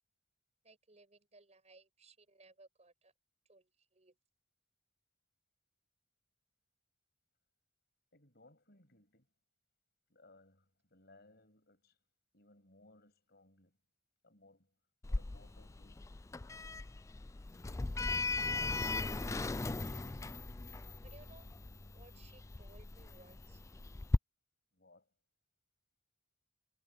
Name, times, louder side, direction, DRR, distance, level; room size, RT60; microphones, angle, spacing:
voice 1, 0.6-3.1 3.5-4.2 19.7-20.3 21.0-21.5 21.9-23.6, right 2 dB, 40° right, 5.3 m, -62 dB
voice 2, 8.1-9.3 10.1-12.0 12.3-13.8 14.2-14.7 15.1-16.1 24.7-25.1, left 2 dB, 60° left, 7.4 m, -64 dB
Sliding door, 15.0-24.2, left 3 dB, 15° left, 0.3 m, -38 dB
head